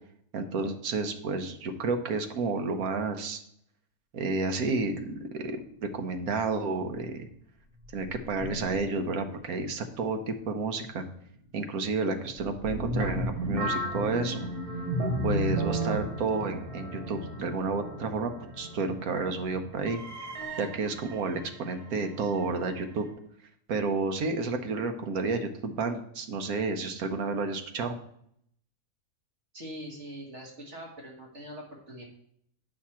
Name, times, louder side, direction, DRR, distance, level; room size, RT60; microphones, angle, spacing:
voice 1, 0.3-3.4 4.1-7.3 7.9-11.0 11.5-14.5 15.2-23.1 23.7-28.0, right 3 dB, 70° right, 6 dB, 1.3 m, -31 dB
sound 1, 7.8-9.5 9.7-10.0 10.5-10.7 12.4-23.1, right 1 dB, 90° right, 2.2 m, -34 dB
voice 2, 29.5-32.0, equal, 50° right, -1 dB, 1.9 m, -43 dB
8.5 x 6.1 x 4.3 m, 0.69 s
omnidirectional pair, 1.6 m